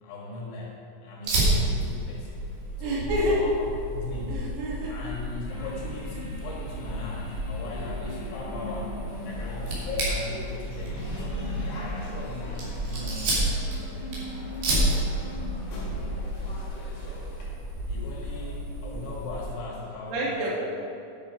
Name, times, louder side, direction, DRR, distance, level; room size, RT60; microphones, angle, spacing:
voice 1, 0.0-2.5 2.8-4.5 4.9-11.4 11.8-13.5 17.8-20.6, left 3 dB, 75° left, -3 dB, 3.9 m, -39 dB
Fire, 1.2-19.5, right 1 dB, 55° right, 4.3 m, -31 dB
voice 2, 2.8-3.4 4.3-4.9 20.1-20.6, equal, 80° right, -5 dB, 4.7 m, -28 dB
sound 1, 5.4-17.2 17.6-17.7, equal, 30° left, 2.1 m, -41 dB
sound 2, 9.1-17.5, left 2 dB, 50° left, 2.8 m, -42 dB
11.0 x 10.5 x 4.6 m, 2.7 s
omnidirectional pair, 5.5 m